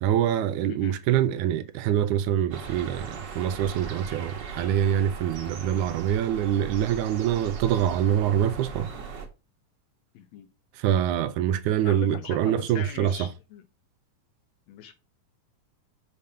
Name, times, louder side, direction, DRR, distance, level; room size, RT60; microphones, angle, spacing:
voice 1, 0.0-8.9 10.8-13.3, right 10 dB, 80° right, 2.0 m, -25 dB
sound 1, 2.5-9.3, right 5 dB, 45° right, 1.5 m, -39 dB
voice 2, 10.1-10.5 11.8-13.6 14.7-15.0, left 9 dB, 75° left, 1.7 m, -41 dB
5.8 x 5.1 x 5.4 m
omnidirectional pair, 3.6 m